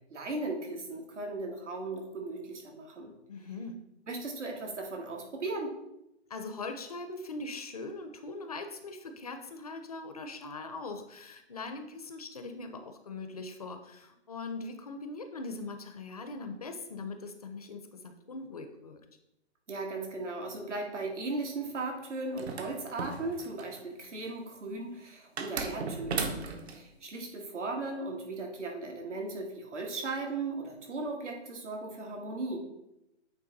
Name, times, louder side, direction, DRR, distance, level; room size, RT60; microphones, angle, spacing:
voice 1, 0.1-3.1 4.1-5.8 19.7-26.4 26.7-32.6, right 2 dB, 90° right, 1 dB, 2.0 m, -37 dB
voice 2, 3.3-3.7 6.3-19.0, left 3 dB, 35° left, 7 dB, 0.4 m, -41 dB
sound 1, 22.4-23.8 25.4-26.8, right 4 dB, 65° right, 1.0 m, -35 dB
8.6 x 3.4 x 3.9 m, 0.87 s
hypercardioid pair, 160°, 35 cm